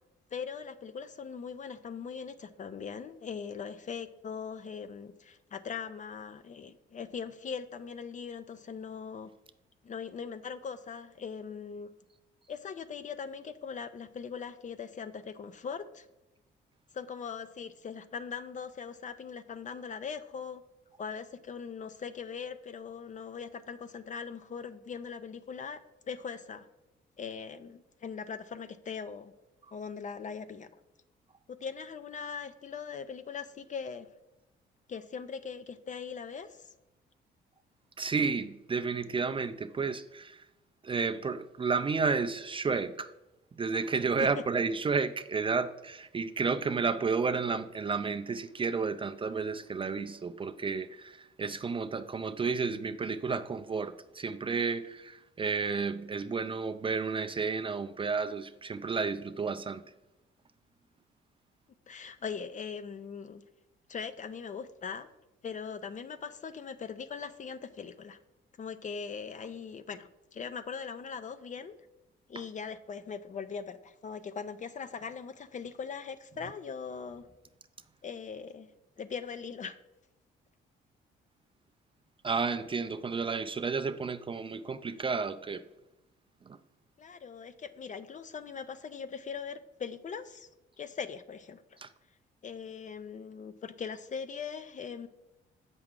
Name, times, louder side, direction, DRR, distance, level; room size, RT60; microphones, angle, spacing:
voice 1, 0.3-9.3 9.8-11.9 12.5-16.1 16.9-20.6 21.0-26.7 27.2-29.3 29.7-30.8 31.5-34.1 34.9-36.7 44.2-44.3 61.9-63.4 63.9-65.1 65.4-68.2 68.6-71.7 72.3-77.3 78.0-78.7 79.0-79.8 87.0-90.5 90.8-91.8 92.4-95.1, left 6 dB, 40° left, 0.5 m, -40 dB
voice 2, 38.0-40.5 40.8-43.1 43.6-59.8 82.2-85.6 86.4-86.6 91.8-91.9, right 4 dB, 25° right, 0.4 m, -32 dB
7.7 x 6.0 x 3.7 m
cardioid pair, 90°, 20 cm